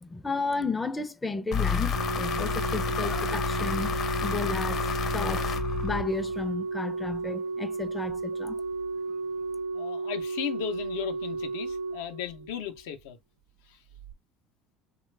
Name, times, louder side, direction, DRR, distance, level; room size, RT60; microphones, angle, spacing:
voice 1, 0.0-3.9 4.2-4.8 5.1-5.5 5.8-8.6, left 3 dB, 15° left, 0.4 m, -33 dB
sound 1, 1.5-6.5, left 6 dB, 55° left, 0.7 m, -30 dB
Organ, 1.9-12.8 13.9-14.1, right 3 dB, 75° right, 0.6 m, -33 dB
voice 2, 9.7-13.2 13.7-13.8, left 10 dB, 90° left, 0.5 m, -36 dB
3.0 x 2.2 x 3.2 m
supercardioid pair, 100°, 0 cm